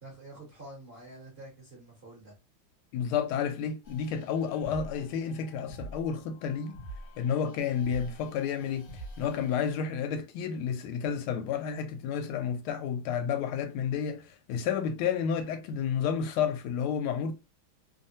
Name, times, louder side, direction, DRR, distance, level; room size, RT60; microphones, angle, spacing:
voice 1, 0.0-2.3, right 2 dB, 40° right, 0.9 m, -48 dB
voice 2, 2.9-6.8 7.2-8.9 9.2-17.3, left 7 dB, 85° left, 1.5 m, -31 dB
sound 1, 3.8-9.7, right 2 dB, 60° left, 0.9 m, -46 dB
3.4 x 2.1 x 2.6 m
omnidirectional pair, 2.3 m